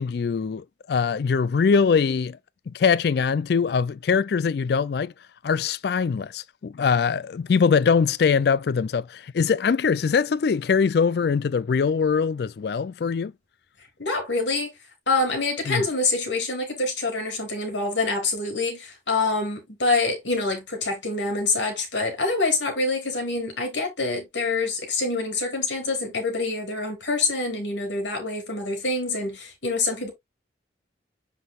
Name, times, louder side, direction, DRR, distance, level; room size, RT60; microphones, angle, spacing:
voice 1, 0.0-2.4 2.7-5.1 5.4-13.3 15.7-15.8, left 5 dB, 60° left, 0.4 m, -22 dB
voice 2, 14.0-14.7 15.1-30.1, left 3 dB, 85° left, 3.1 m, -26 dB
7.5 x 5.8 x 2.4 m
head